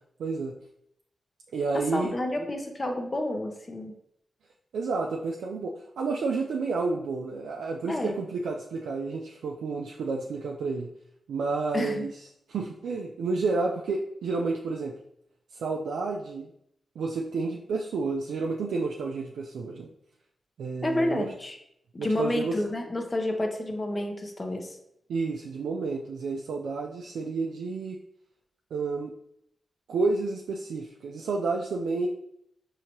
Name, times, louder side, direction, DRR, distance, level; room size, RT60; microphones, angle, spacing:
voice 1, 0.2-0.5 1.5-2.1 4.7-10.9 11.3-12.1 12.5-15.0 15.5-16.5 17.0-19.9 20.6-21.3 22.0-22.5 25.1-28.0 28.7-29.1 29.9-32.1, right 4 dB, 90° right, -1 dB, 0.3 m, -30 dB
voice 2, 1.7-3.9 7.9-8.1 11.7-12.1 20.8-21.6 21.9-24.8, left 1 dB, 40° left, 3 dB, 0.7 m, -29 dB
5.0 x 2.7 x 2.9 m, 0.74 s
cardioid pair, 50°, 0 cm